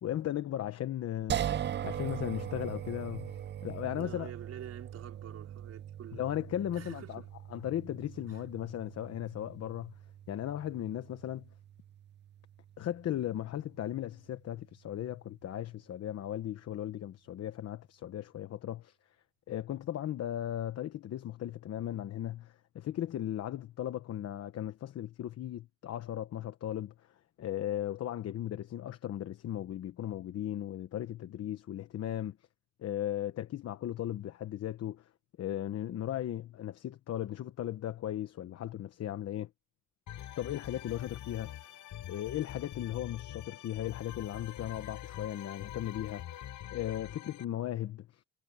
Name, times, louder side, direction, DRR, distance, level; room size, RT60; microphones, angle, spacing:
voice 1, 0.0-3.4 3.6-4.3 6.1-7.2 7.5-9.9 10.3-11.5 12.8-19.0 19.5-26.9 27.4-32.4 32.8-35.0 35.4-39.5 40.4-41.7 42.1-46.4 46.7-48.2, left 12 dB, 55° left, 1.1 m, -37 dB
sound 1, 1.3-14.4, right 10 dB, 35° right, 0.6 m, -41 dB
voice 2, 3.9-6.4 6.7-7.3 8.3-8.4, right 9 dB, 55° right, 5.0 m, -48 dB
sound 2, 40.1-47.4, left 12 dB, 85° left, 6.7 m, -45 dB
cardioid pair, 160°, 29 cm